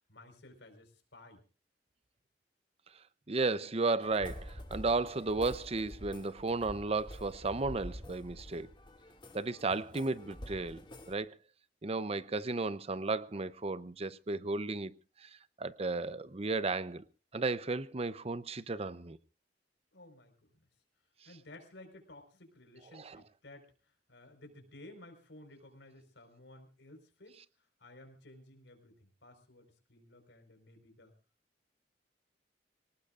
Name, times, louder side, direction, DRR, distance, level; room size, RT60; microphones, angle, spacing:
voice 1, 0.0-1.4 19.9-20.7 21.2-31.1, left 1 dB, 85° left, 4.7 m, -55 dB
voice 2, 3.3-8.7 9.3-11.4 11.8-14.9 15.2-15.3 15.6-17.0 17.3-19.2 22.9-23.2, right 3 dB, 35° right, 0.7 m, -34 dB
sound 1, 4.0-11.2, equal, 30° left, 2.3 m, -47 dB
25.5 x 18.5 x 2.5 m
head